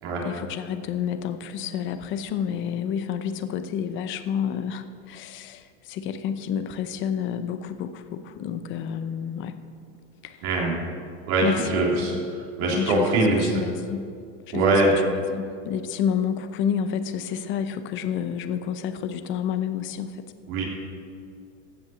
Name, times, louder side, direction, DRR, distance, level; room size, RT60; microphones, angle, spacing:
voice 1, 0.2-9.6 10.2-10.4 11.4-12.2 12.7-13.2 13.5-14.0 14.5-20.2, left 8 dB, 30° left, 10 dB, 0.7 m, -29 dB
voice 2, 10.4-10.8 11.3-12.1 12.6-13.5 14.5-14.9 20.5-20.6, right 2 dB, 50° right, -3 dB, 3.6 m, -22 dB
15.0 x 6.0 x 7.1 m, 2.3 s
supercardioid pair, 150°, 37 cm